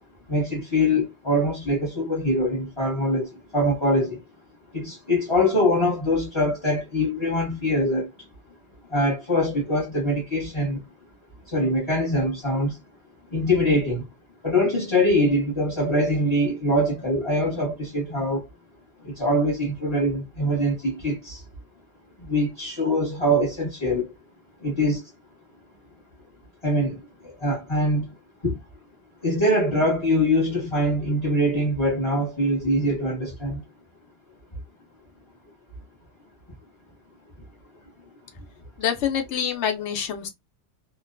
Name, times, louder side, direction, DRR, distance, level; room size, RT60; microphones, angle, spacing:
voice 1, 0.3-4.2 4.7-8.1 8.9-10.8 11.5-12.8 13.3-14.1 14.4-18.5 19.0-21.4 22.2-24.1 24.6-25.1 26.6-28.1 28.4-28.6 29.2-33.6, left 1 dB, 25° left, 1.0 m, -23 dB
voice 2, 38.8-40.3, left 8 dB, 75° left, 1.0 m, -26 dB
2.4 x 2.2 x 2.5 m
omnidirectional pair, 1.2 m